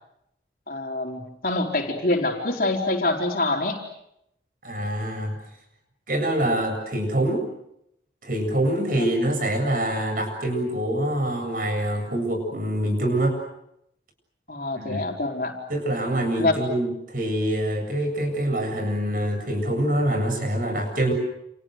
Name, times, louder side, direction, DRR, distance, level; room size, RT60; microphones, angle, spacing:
voice 1, 0.7-3.8 9.0-9.1 14.5-15.6 16.4-16.7, left 2 dB, 50° left, 1 dB, 4.4 m, -25 dB
voice 2, 4.6-5.4 6.1-7.5 8.2-13.4 14.7-15.0 15.7-21.1, right 1 dB, 50° right, 5 dB, 7.9 m, -25 dB
29.5 x 29.0 x 6.6 m, 0.79 s
head